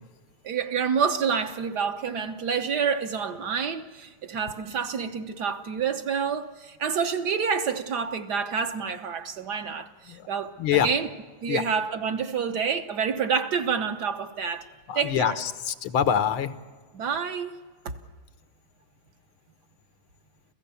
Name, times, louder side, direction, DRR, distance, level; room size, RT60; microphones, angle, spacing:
voice 1, 0.4-11.1 11.4-14.6 14.9-15.4 16.9-17.5 17.8-17.9, right 6 dB, 60° right, 1.5 m, -28 dB
voice 2, 10.6-10.9 11.5-11.6 14.9-16.5, left 9 dB, 90° left, 1.9 m, -25 dB
28.5 x 15.5 x 7.0 m
omnidirectional pair, 2.2 m